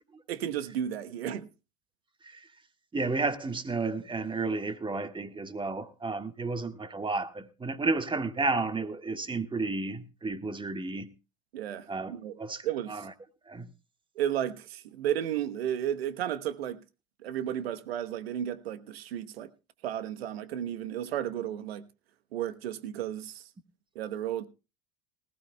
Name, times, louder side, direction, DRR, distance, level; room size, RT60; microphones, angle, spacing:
voice 1, 0.3-1.5 11.5-12.4 12.6-13.0 14.2-16.8 17.2-19.5 19.8-21.8 22.3-23.4 23.9-24.5, right 10 dB, 80° right, 1.1 m, -33 dB
voice 2, 2.9-11.1 11.9-12.1 12.4-13.1 13.5-13.7, right 3 dB, 15° right, 1.5 m, -32 dB
19.0 x 15.0 x 2.2 m
hypercardioid pair, 85°, 30 cm